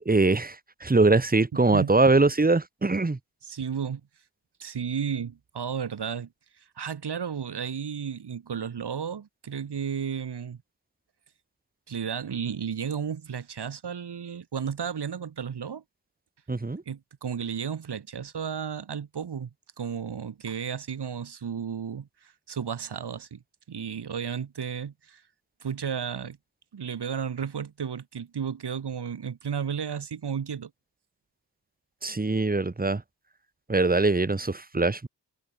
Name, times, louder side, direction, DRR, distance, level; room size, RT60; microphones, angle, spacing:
voice 1, 0.1-3.2 16.5-16.8 32.0-33.0 33.7-35.1, right 3 dB, 20° right, 1.7 m, -22 dB
voice 2, 1.5-2.0 3.4-4.0 4.6-6.3 6.6-10.6 11.9-15.8 16.9-19.5 19.8-23.4 23.7-25.2 25.6-26.4 26.7-30.7, right 7 dB, 65° right, 3.3 m, -33 dB
cardioid pair, 55°, 42 cm